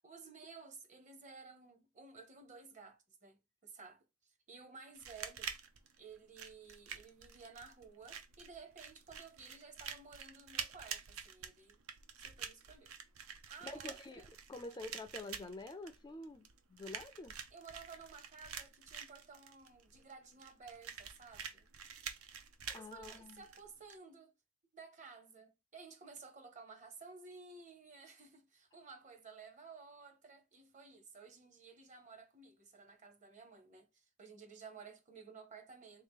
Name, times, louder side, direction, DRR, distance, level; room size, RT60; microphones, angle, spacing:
voice 1, 0.0-5.5 6.0-11.8 12.2-13.0 13.5-14.3 14.7-14.8 17.5-21.7 22.7-24.3 24.7-36.0, right 5 dB, 35° right, 0.7 m, -55 dB
sound 1, 5.0-24.0, right 7 dB, 90° right, 0.6 m, -48 dB
voice 2, 13.6-14.2 14.5-17.3 22.7-23.3, left 2 dB, 20° left, 0.3 m, -47 dB
3.5 x 2.8 x 3.6 m
head